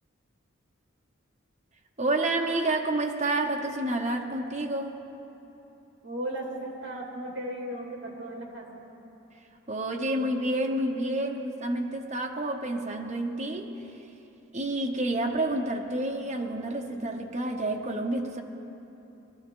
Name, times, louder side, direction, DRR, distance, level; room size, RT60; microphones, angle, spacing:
voice 1, 2.0-5.0 9.7-13.7 14.5-18.4, right 1 dB, 35° right, 1 dB, 0.9 m, -29 dB
voice 2, 6.0-8.8, right 1 dB, 60° right, -1 dB, 2.3 m, -36 dB
20.5 x 13.0 x 3.8 m, 3.0 s
head